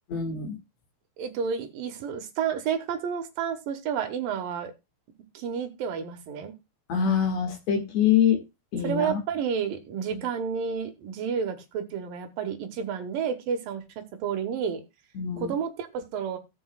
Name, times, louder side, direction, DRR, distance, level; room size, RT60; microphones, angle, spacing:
voice 1, 0.1-0.6 6.9-8.4 8.7-9.2 10.1-10.2 15.1-15.5, left 8 dB, 50° left, 3 dB, 2.2 m, -25 dB
voice 2, 1.2-4.7 5.3-6.5 8.8-13.8 14.2-14.8 15.4-16.4, right 7 dB, 70° right, 5 dB, 2.4 m, -30 dB
18.0 x 6.2 x 2.3 m, 0.24 s
omnidirectional pair, 5.0 m